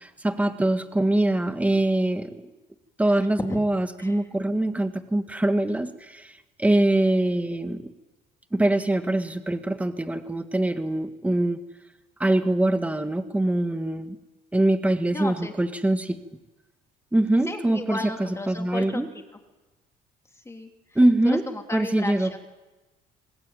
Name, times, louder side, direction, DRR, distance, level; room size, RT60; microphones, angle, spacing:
voice 1, 0.0-2.4 3.0-6.3 6.6-7.8 8.5-11.6 12.2-14.2 14.5-16.2 17.1-18.0 18.5-19.1 20.9-21.4 21.7-22.4, right 1 dB, 10° right, 8 dB, 1.7 m, -23 dB
voice 2, 15.1-15.5 17.5-19.1 19.3-19.4 20.4-21.0 21.2-22.4, left 2 dB, 15° left, 4 dB, 3.0 m, -34 dB
25.0 x 20.5 x 9.2 m, 1.1 s
cardioid pair, 110°, 17 cm